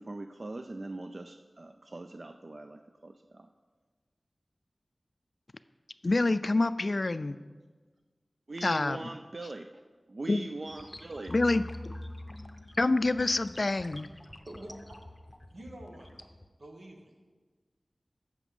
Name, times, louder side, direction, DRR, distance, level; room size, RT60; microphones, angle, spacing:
voice 1, 0.0-3.5 8.5-9.7 10.1-11.3, right 2 dB, 55° right, 7 dB, 0.4 m, -41 dB
voice 2, 6.0-7.4 8.6-9.0 10.3-10.5 11.3-11.9 12.8-14.1, left 2 dB, 55° left, 14 dB, 0.3 m, -27 dB
sound 1, 10.7-16.5, left 1 dB, 25° left, 0.6 m, -46 dB
voice 3, 14.5-15.0 15.5-16.3 16.6-17.1, right 1 dB, 85° right, 1 dB, 1.3 m, -47 dB
8.5 x 6.8 x 5.4 m, 1.4 s
wide cardioid pair, 50°, 0 cm